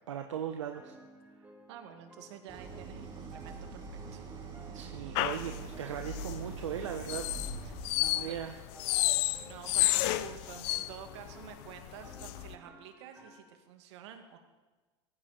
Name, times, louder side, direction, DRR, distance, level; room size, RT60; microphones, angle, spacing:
voice 1, 0.1-0.9 4.7-7.3 7.9-8.6, right 9 dB, 90° right, 5 dB, 0.9 m, -38 dB
sound 1, 0.7-13.6, right 1 dB, 10° right, 2.2 m, -57 dB
voice 2, 1.7-4.3 7.6-7.8 8.1-8.5 9.1-14.4, right 9 dB, 70° right, 6 dB, 2.1 m, -50 dB
Idling, 2.5-8.6, right 3 dB, 30° right, 4.0 m, -44 dB
sound 2, 5.1-12.6, left 17 dB, 65° left, 0.7 m, -32 dB
18.0 x 15.0 x 4.3 m, 1.3 s
hypercardioid pair, 100°, 15 cm